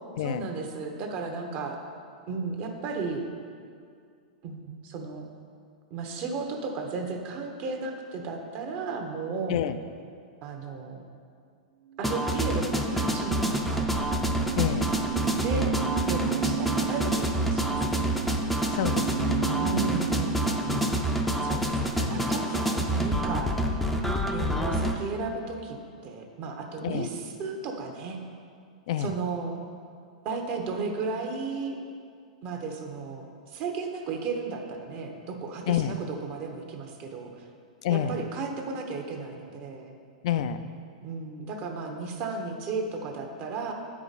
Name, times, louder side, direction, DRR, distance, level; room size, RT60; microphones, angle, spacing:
voice 1, 0.2-1.8 2.3-3.2 4.4-5.2 5.9-9.6 10.4-11.0 12.0-13.9 15.3-15.7 16.0-18.1 19.6-20.8 21.4-23.6 24.3-25.8 26.0-28.2 29.0-29.6 30.2-31.8 32.4-37.5 37.9-40.0 41.0-43.7, right 4 dB, 40° right, 3 dB, 0.9 m, -34 dB
sound 1, 11.9-22.0, right 11 dB, 80° right, 1.1 m, -35 dB
sound 2, 12.0-25.0, right 1 dB, ahead, 0.5 m, -27 dB
voice 2, 14.5-14.9 18.7-19.7 20.7-21.0 22.0-22.4 26.8-27.1 28.9-29.1 35.7-35.9 37.8-38.3 40.2-40.7, left 9 dB, 60° left, 10 dB, 0.3 m, -29 dB
8.9 x 4.9 x 4.1 m, 2.2 s
hypercardioid pair, 135°, 4 cm